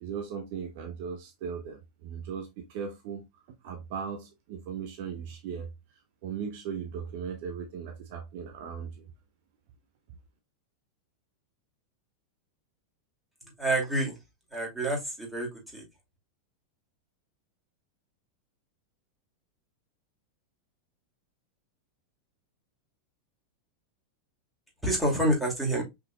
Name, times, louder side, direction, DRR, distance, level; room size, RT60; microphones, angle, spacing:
voice 1, 0.0-5.7 6.2-9.0, right 7 dB, 50° right, 0.7 m, -38 dB
voice 2, 13.6-14.2 14.5-15.8 24.8-25.8, right 1 dB, 5° right, 2.6 m, -28 dB
5.6 x 3.8 x 2.3 m
figure-of-eight pair, 90°, 0 cm